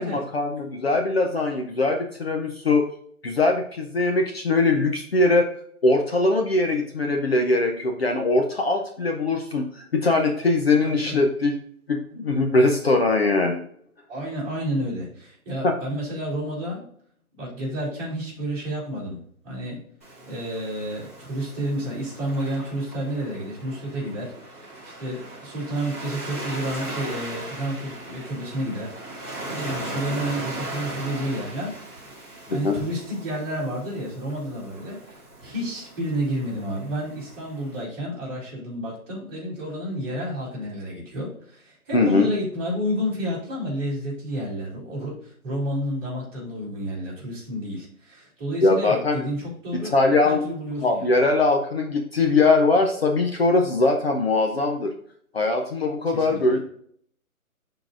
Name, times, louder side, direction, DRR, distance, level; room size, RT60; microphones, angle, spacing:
voice 1, 0.0-2.9 3.2-5.5 5.8-11.5 11.9-13.6 15.6-15.7 32.5-32.7 41.9-42.3 48.6-49.2 49.9-50.4 50.8-54.9 55.3-56.6, left 3 dB, 45° left, 2 dB, 0.7 m, -21 dB
voice 2, 10.8-11.2 14.1-16.9 17.3-19.8 20.3-31.8 32.5-35.0 35.4-49.9 50.2-51.2 56.1-56.6, equal, 15° right, -8 dB, 2.5 m, -30 dB
Waves surf, 20.0-37.8, right 1 dB, 10° left, 0.7 m, -38 dB
11.5 x 4.0 x 2.5 m, 0.63 s
hypercardioid pair, 170°, 44 cm